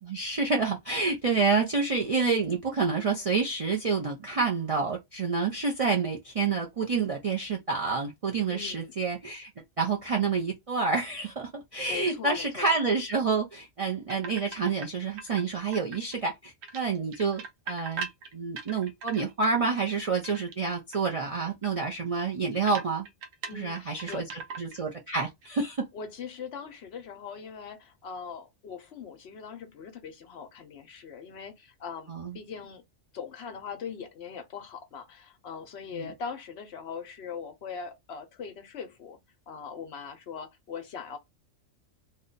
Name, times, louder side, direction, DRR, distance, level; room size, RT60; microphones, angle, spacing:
voice 1, 0.0-9.5 9.8-17.4 17.7-18.1 18.3-23.1 23.5-24.3 24.6-25.9 32.1-32.4 35.9-36.1, right 4 dB, 55° right, 0.4 m, -28 dB
voice 2, 8.5-8.9 11.8-12.7 23.5-24.3 25.9-32.8 33.1-39.2 39.5-41.2, left 6 dB, 65° left, 0.8 m, -41 dB
sound 1, 14.1-14.9 15.2-16.3 16.6-19.5 19.9-20.7 20.9-21.2 21.6-21.7 22.0-22.1 22.7-24.9 25.2-25.5, right 5 dB, 80° right, 1.1 m, -40 dB
2.7 x 2.2 x 3.8 m
omnidirectional pair, 1.3 m